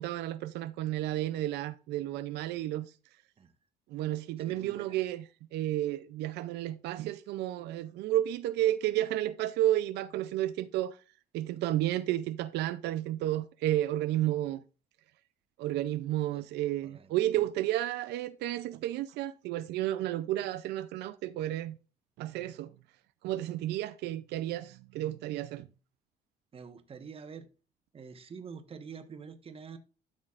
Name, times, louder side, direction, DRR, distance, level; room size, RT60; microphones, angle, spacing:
voice 1, 0.0-2.9 3.9-11.0 11.3-14.6 15.6-21.8 22.2-22.7 23.2-25.7, right 13 dB, 80° right, 0.5 m, -32 dB
voice 2, 4.4-5.0 16.3-16.5 16.8-17.5 26.5-27.5 27.9-29.8, right 6 dB, 35° right, 1.2 m, -47 dB
12.5 x 6.2 x 2.5 m
cardioid pair, 110°, 17 cm